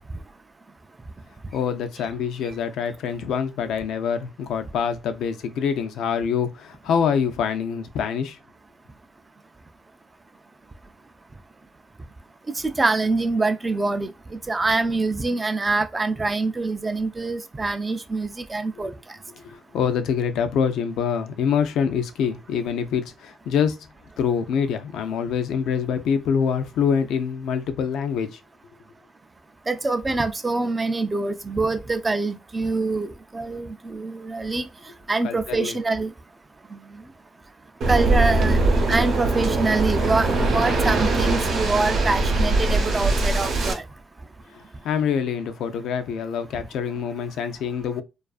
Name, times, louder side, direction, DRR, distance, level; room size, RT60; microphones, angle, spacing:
voice 1, 1.5-8.4 18.8-18.9 19.4-23.8 24.2-28.4 35.2-35.8 44.5-48.0, left 7 dB, 80° left, 0.4 m, -25 dB
voice 2, 12.6-14.1 14.5-18.9 29.7-34.7 35.1-36.1 37.9-38.6 38.9-43.8, right 3 dB, 25° right, 0.3 m, -25 dB
Waves surf, 37.8-43.7, right 2 dB, 70° right, 0.7 m, -21 dB
2.4 x 2.3 x 2.3 m
cardioid pair, 90°, 0 cm